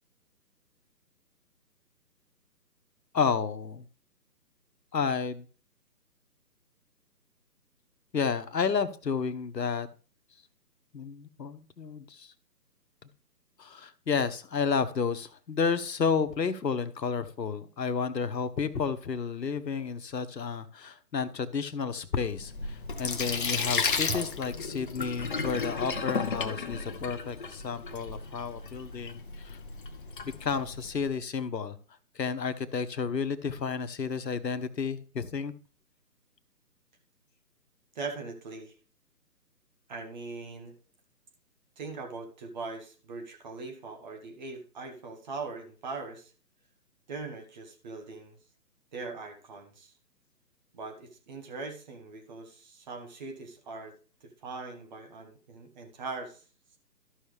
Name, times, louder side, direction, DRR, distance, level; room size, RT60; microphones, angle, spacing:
voice 1, 3.1-3.8 4.9-5.5 8.1-9.9 10.9-12.3 13.6-29.6 30.4-31.8 32.1-35.5, left 5 dB, 90° left, 12 dB, 1.0 m, -31 dB
Sink (filling or washing), 22.2-31.0, left 4 dB, 35° left, 0.7 m, -34 dB
voice 2, 37.9-38.7 39.9-40.7 41.8-46.3 47.1-48.4 48.9-49.9 50.7-53.9 54.2-56.4, right 4 dB, 25° right, 4 dB, 1.3 m, -40 dB
13.0 x 5.6 x 3.3 m, 0.39 s
figure-of-eight pair, 150°, 49 cm